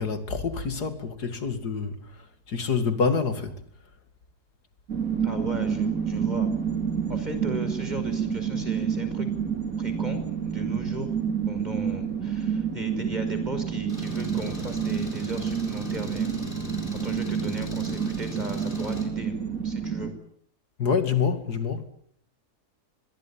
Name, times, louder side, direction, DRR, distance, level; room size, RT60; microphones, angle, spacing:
voice 1, 0.0-3.6 20.8-21.9, left 5 dB, 85° left, 3.0 m, -27 dB
sound 1, 4.9-20.1, right 7 dB, 60° right, 3.8 m, -29 dB
voice 2, 5.2-6.5 7.1-9.3 9.8-11.1 11.5-16.3 17.0-19.4 19.6-20.1, right 1 dB, 25° right, 5.6 m, -37 dB
Engine, 13.9-19.0, left 4 dB, 30° left, 7.0 m, -40 dB
26.0 x 21.5 x 9.0 m
omnidirectional pair, 1.7 m